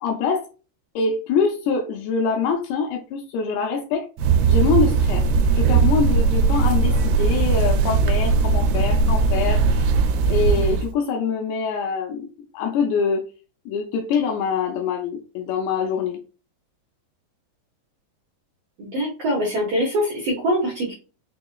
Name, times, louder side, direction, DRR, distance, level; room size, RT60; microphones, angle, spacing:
voice 1, 0.0-0.5 1.0-4.1 4.5-5.3 5.5-9.9 10.3-13.2 13.7-16.2, left 5 dB, 85° left, 2 dB, 2.8 m, -24 dB
sound 1, 4.2-10.9, right 4 dB, 80° right, 2.5 m, -19 dB
voice 2, 18.8-20.9, equal, 65° right, -5 dB, 1.6 m, -23 dB
6.3 x 2.9 x 2.3 m, 0.34 s
omnidirectional pair, 4.8 m